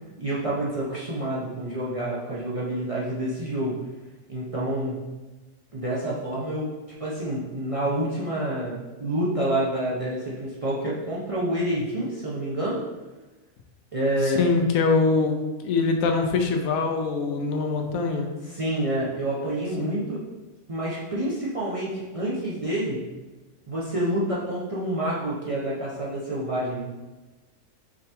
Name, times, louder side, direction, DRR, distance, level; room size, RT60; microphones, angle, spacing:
voice 1, 0.2-3.8 4.3-5.1 5.7-6.7 7.0-12.8 13.9-14.5 18.4-20.2 20.7-23.1 23.7-26.8, right 1 dB, 40° right, -7 dB, 0.5 m, -28 dB
voice 2, 14.2-15.3 15.6-18.3 19.8-19.9, left 4 dB, 90° left, 4 dB, 1.0 m, -23 dB
4.9 x 2.9 x 3.3 m, 1.2 s
omnidirectional pair, 1.4 m